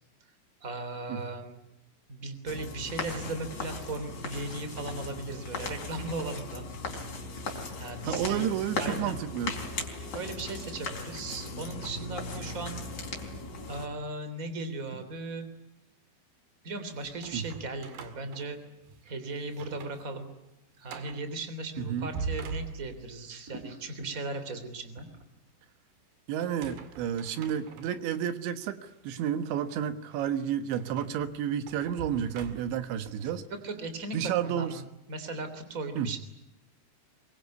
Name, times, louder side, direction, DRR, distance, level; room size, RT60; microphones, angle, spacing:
voice 1, 0.6-1.6 2.1-6.7 7.3-7.4 7.8-8.5 8.8-9.2 10.0-12.9 13.7-15.5 16.6-18.6 19.0-20.3 20.8-25.1 33.2-34.2 34.4-34.8 35.1-36.2, right 2 dB, 20° right, 10 dB, 3.0 m, -37 dB
sound 1, 2.5-13.9, left 3 dB, 40° left, 5.2 m, -38 dB
voice 2, 8.0-9.6 17.3-17.5 21.8-22.1 26.3-33.4 34.1-34.8 36.0-36.1, right 9 dB, 90° right, 11 dB, 3.7 m, -31 dB
sound 2, 17.0-19.1 19.5-20.1 20.4-20.5 20.9-21.3 21.9-23.2 26.4-28.2 28.8-29.0 30.7-33.0, right 5 dB, 65° right, 4.0 m, -42 dB
24.0 x 23.5 x 9.6 m, 0.86 s
omnidirectional pair, 5.1 m